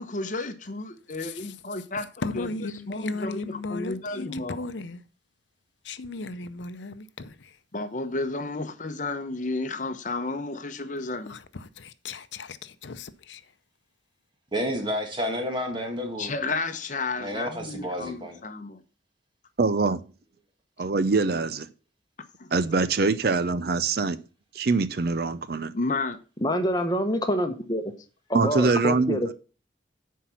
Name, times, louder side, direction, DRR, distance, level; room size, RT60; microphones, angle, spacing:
voice 1, 0.0-2.1 2.4-2.5 2.9-4.6 7.7-11.4 16.2-18.8 22.4-22.5 25.7-26.2, left 3 dB, 40° left, 0.8 m, -32 dB
voice 2, 1.2-1.8 2.2-5.0 5.8-7.6 11.2-13.5, left 3 dB, 70° left, 0.7 m, -36 dB
voice 3, 14.5-16.3 17.2-18.4, equal, 25° right, 1.8 m, -30 dB
voice 4, 19.6-20.0 20.8-21.7 22.5-24.2 24.5-25.7 28.3-29.2, right 4 dB, 55° right, 0.5 m, -24 dB
voice 5, 26.4-27.8 28.3-29.3, equal, 20° left, 1.1 m, -26 dB
9.9 x 4.7 x 5.7 m
head